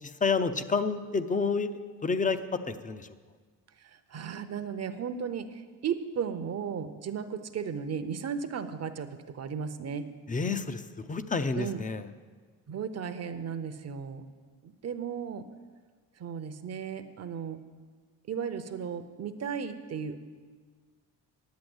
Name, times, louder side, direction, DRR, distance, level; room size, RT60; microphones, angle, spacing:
voice 1, 0.0-1.7 2.0-3.1 10.3-10.8 11.1-12.1, left 4 dB, 20° left, 11 dB, 0.5 m, -29 dB
voice 2, 3.8-10.1 11.6-11.8 12.7-14.2 14.6-15.4 16.2-17.6 18.3-20.2, right 7 dB, 40° right, 10 dB, 0.7 m, -35 dB
10.5 x 8.0 x 7.9 m, 1.5 s
cardioid pair, 120°, 40 cm